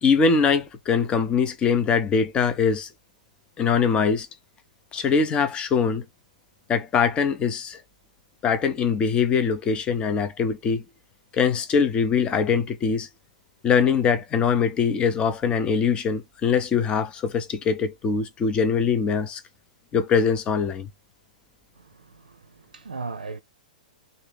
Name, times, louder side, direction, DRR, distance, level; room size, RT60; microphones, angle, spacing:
voice 1, 0.0-2.9 3.6-4.3 4.9-6.0 6.7-7.8 8.4-10.8 11.3-13.1 13.6-19.4 19.9-20.9, left 6 dB, 25° left, 0.7 m, -22 dB
voice 2, 21.8-22.4 22.7-23.4, right 4 dB, 85° right, 0.4 m, -37 dB
2.7 x 2.6 x 3.4 m
hypercardioid pair, 110°, 4 cm